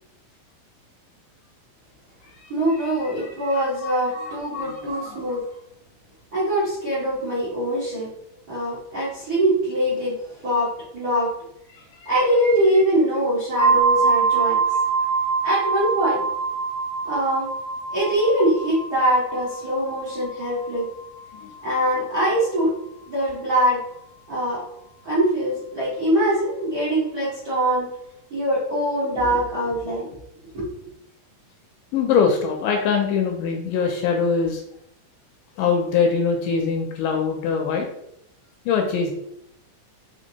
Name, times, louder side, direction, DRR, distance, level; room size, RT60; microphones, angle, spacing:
voice 1, 2.5-5.4 6.3-8.1 8.5-10.2 10.4-11.3 12.0-14.8 15.4-16.2 17.0-17.5 17.9-20.9 21.6-22.7 23.1-23.8 24.3-24.6 25.0-27.9 28.3-30.1 30.5-30.7, right 1 dB, 60° right, -8 dB, 0.9 m, -23 dB
voice 2, 4.2-5.2 11.7-12.1 21.4-21.5 31.9-34.6 35.6-37.9 38.7-39.1, left 6 dB, 80° left, 2 dB, 2.0 m, -23 dB
sound 1, 13.6-23.2, right 5 dB, 85° right, 2.2 m, -25 dB
5.1 x 3.3 x 2.8 m, 0.80 s
omnidirectional pair, 4.1 m